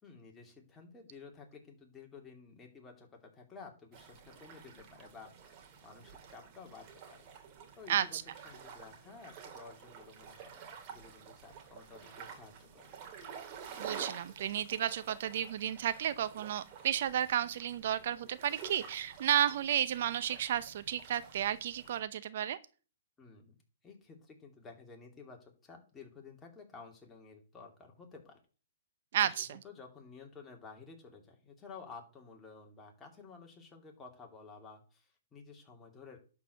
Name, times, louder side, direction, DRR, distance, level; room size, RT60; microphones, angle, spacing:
voice 1, 0.0-5.3 5.8-7.3 7.8-8.2 8.4-12.9 23.2-23.6 23.8-28.4 29.2-36.2, left 4 dB, 15° left, 1 dB, 2.7 m, -53 dB
sound 1, 3.9-22.0, right 7 dB, 35° right, 2.7 m, -50 dB
voice 2, 7.9-8.2 13.8-22.6 29.1-29.6, right 10 dB, 55° right, 13 dB, 0.7 m, -32 dB
11.0 x 4.9 x 6.8 m, 0.38 s
hypercardioid pair, 130°, 0 cm